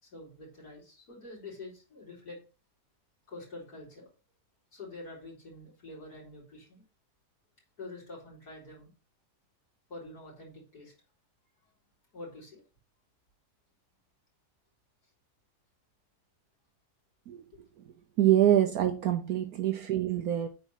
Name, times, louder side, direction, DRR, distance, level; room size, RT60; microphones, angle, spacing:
voice 1, 0.0-2.4 3.3-4.1 4.7-6.8 7.8-8.9 9.9-10.9 11.6-11.7 12.1-12.6 17.5-17.6, left 2 dB, 75° left, 4.7 m, -46 dB
voice 2, 18.2-20.5, right 12 dB, 70° right, 1.2 m, -25 dB
9.2 x 4.2 x 5.5 m
omnidirectional pair, 1.7 m